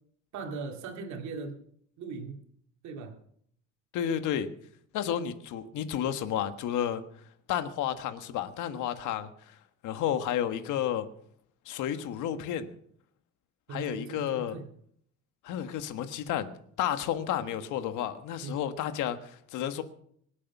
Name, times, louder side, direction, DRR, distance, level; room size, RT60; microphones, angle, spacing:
voice 1, 0.3-1.6 2.0-2.4 2.8-3.2 13.7-14.6 18.4-18.5, right 4 dB, 70° right, 4 dB, 2.5 m, -39 dB
voice 2, 3.9-4.5 4.9-7.0 7.5-9.6 9.8-11.1 11.7-12.7 13.7-14.6 15.4-16.5 16.8-19.8, left 10 dB, 85° left, 9 dB, 1.6 m, -31 dB
24.5 x 8.5 x 6.0 m, 0.65 s
cardioid pair, 175°, 30 cm